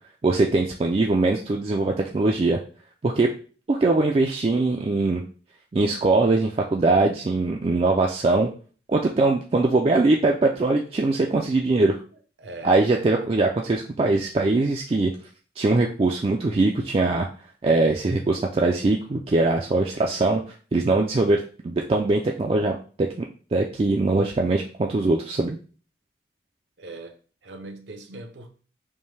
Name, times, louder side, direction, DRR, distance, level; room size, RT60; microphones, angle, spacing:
voice 1, 0.2-2.6 3.0-3.3 3.7-5.2 5.7-8.5 8.9-12.0 12.6-15.1 15.6-17.3 17.6-20.4 20.7-23.2 23.5-25.6, right 2 dB, 30° right, 0.3 m, -22 dB
voice 2, 12.4-12.8 26.8-28.5, right 2 dB, 80° right, 0.7 m, -40 dB
5.3 x 2.2 x 3.2 m
head